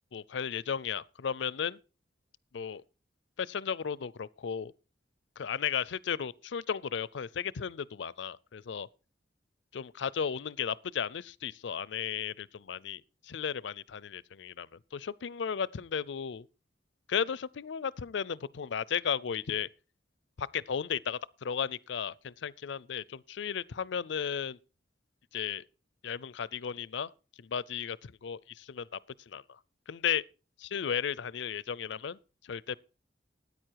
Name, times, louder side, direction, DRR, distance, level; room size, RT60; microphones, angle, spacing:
voice 1, 0.1-1.8 2.5-2.8 3.4-4.7 5.4-8.9 9.7-16.5 17.1-19.7 20.4-24.6 25.3-25.7 26.0-27.1 27.4-28.9 29.3-29.6 29.9-30.2 30.6-32.2 32.4-32.8, left 7 dB, 70° left, 0.5 m, -35 dB
13.5 x 9.5 x 4.6 m
head